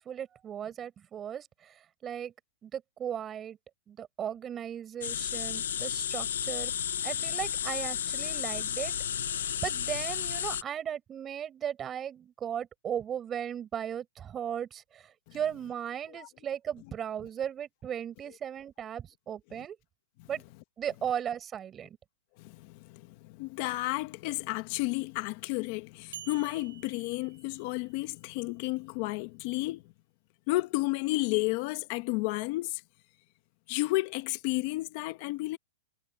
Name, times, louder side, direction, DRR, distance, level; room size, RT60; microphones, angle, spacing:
voice 1, 0.0-2.3 2.6-3.6 3.9-6.7 7.0-8.9 9.3-19.8 20.3-20.4 20.8-22.0, right 9 dB, 15° right, 6.4 m, -37 dB
sound 1, 5.0-10.6, left 9 dB, 80° left, 1.0 m, -32 dB
voice 2, 22.4-29.8 30.5-32.8 33.7-35.6, left 21 dB, 35° left, 1.1 m, -32 dB
sound 2, 26.1-28.2, right 9 dB, 75° right, 6.3 m, -49 dB
hypercardioid pair, 170°, 0 cm